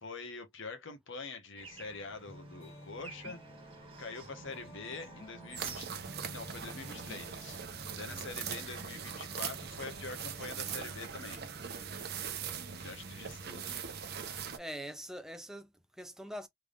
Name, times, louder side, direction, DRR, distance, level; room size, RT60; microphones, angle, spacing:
voice 1, 0.0-3.4 4.0-5.9 6.3-7.6 8.0-11.4 12.7-13.9, left 4 dB, 60° left, 1.0 m, -45 dB
Bird / Traffic noise roadway noise, 1.6-8.3, right 4 dB, 25° right, 1.5 m, -52 dB
sound 1, 2.3-12.8, left 1 dB, 35° left, 2.3 m, -54 dB
sound 2, 5.6-14.6, right 7 dB, 50° right, 0.8 m, -41 dB
voice 2, 8.0-8.4 14.5-16.5, equal, ahead, 0.5 m, -44 dB
3.5 x 3.4 x 2.4 m
head